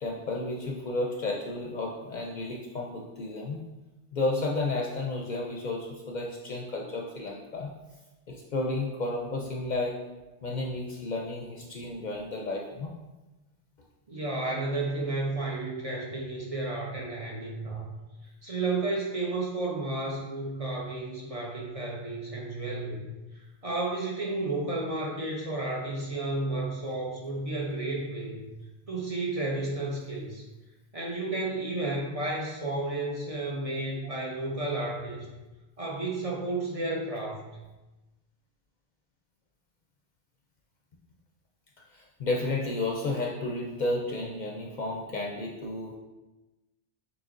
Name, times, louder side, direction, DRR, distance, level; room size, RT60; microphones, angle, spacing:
voice 1, 0.0-3.6 4.1-7.7 8.3-10.0 10.4-12.9 41.9-45.9, left 2 dB, 55° left, 0 dB, 0.6 m, -32 dB
voice 2, 14.1-17.9 18.2-23.0 23.6-28.5 28.9-30.4 30.9-35.3 35.8-37.4, right 2 dB, 40° right, -3 dB, 0.7 m, -32 dB
6.4 x 3.0 x 2.5 m, 1.1 s
omnidirectional pair, 1.0 m